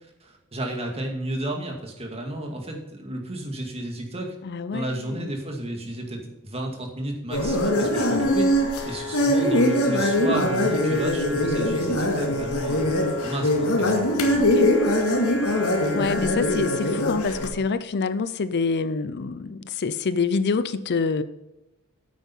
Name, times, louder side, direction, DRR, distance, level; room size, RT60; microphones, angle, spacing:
voice 1, 0.2-4.4 4.7-8.5 8.8-14.5, right 1 dB, 30° right, 2 dB, 2.2 m, -32 dB
voice 2, 4.4-5.3 8.1-8.4 14.4-14.7 15.9-21.2, left 4 dB, 50° left, 14 dB, 0.5 m, -26 dB
sound 1, 7.3-17.5, left 1 dB, 85° left, 2.1 m, -22 dB
9.1 x 8.7 x 5.5 m, 0.97 s
head